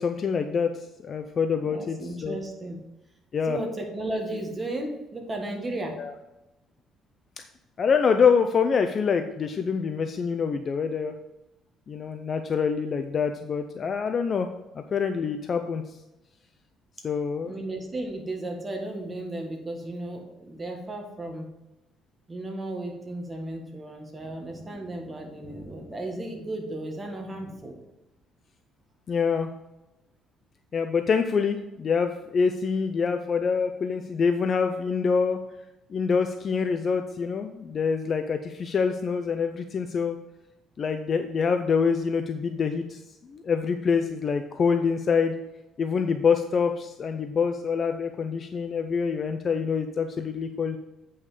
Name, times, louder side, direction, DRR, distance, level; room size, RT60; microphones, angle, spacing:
voice 1, 0.0-2.4 3.3-3.6 6.0-6.1 7.4-7.5 7.8-11.1 11.9-14.5 14.7-15.8 17.0-17.5 29.1-29.5 30.7-35.4 35.9-40.2 40.8-43.0 43.3-45.4 45.8-50.8, left 5 dB, 35° left, 7 dB, 0.5 m, -25 dB
voice 2, 1.6-2.8 3.5-6.0 17.4-21.5 22.3-27.8, right 1 dB, 20° right, 2 dB, 1.6 m, -34 dB
8.2 x 5.5 x 4.9 m, 0.94 s
cardioid pair, 140°, 0 cm